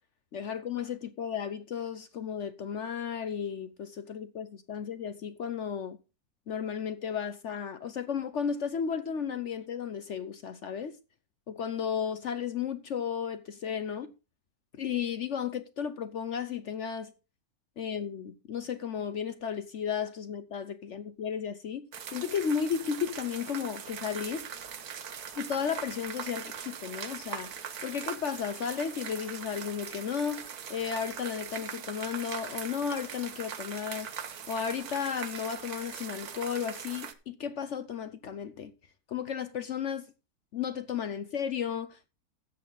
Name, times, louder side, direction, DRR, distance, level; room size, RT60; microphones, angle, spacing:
voice 1, 0.3-6.0 6.5-11.0 11.5-14.1 14.8-17.1 17.8-24.5 25.4-27.5 27.8-30.4 30.7-34.1 34.5-38.7 39.1-40.1 40.5-42.1, left 7 dB, 60° left, 1.0 m, -34 dB
sound 1, 21.9-37.1, right 8 dB, 90° right, 1.6 m, -41 dB
13.0 x 7.9 x 3.9 m
omnidirectional pair, 1.6 m